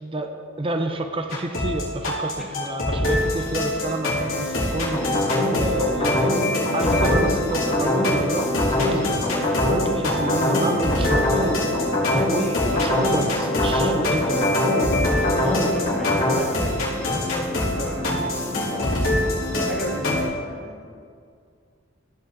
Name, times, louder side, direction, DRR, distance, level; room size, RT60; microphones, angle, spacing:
voice 1, 0.0-6.4 6.7-11.7 12.1-14.6 20.0-20.3, right 2 dB, 25° right, 6 dB, 0.5 m, -30 dB
sound 1, 0.9-20.3, left 1 dB, 60° right, 1.5 m, -39 dB
sound 2, 1.3-20.2, left 1 dB, 85° left, 2.4 m, -25 dB
sound 3, 4.9-16.3, left 1 dB, 35° left, 2.2 m, -23 dB
voice 2, 15.0-19.1 19.5-20.9, equal, ahead, -5 dB, 1.8 m, -35 dB
14.0 x 8.2 x 2.6 m, 2.2 s
head